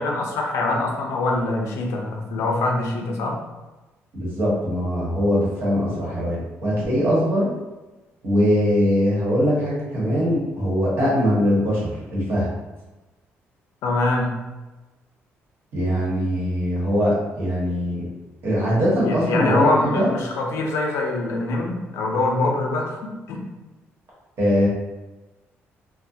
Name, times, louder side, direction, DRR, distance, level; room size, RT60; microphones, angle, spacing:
voice 1, 0.0-3.4 13.8-14.3 19.0-23.4, left 2 dB, 75° left, 0 dB, 0.5 m, -24 dB
voice 2, 4.1-7.5 8.2-12.5 15.7-18.0 18.4-20.1 24.4-24.7, equal, 55° right, -6 dB, 1.0 m, -21 dB
2.3 x 2.1 x 2.7 m, 1.1 s
cardioid pair, 135°, 5 cm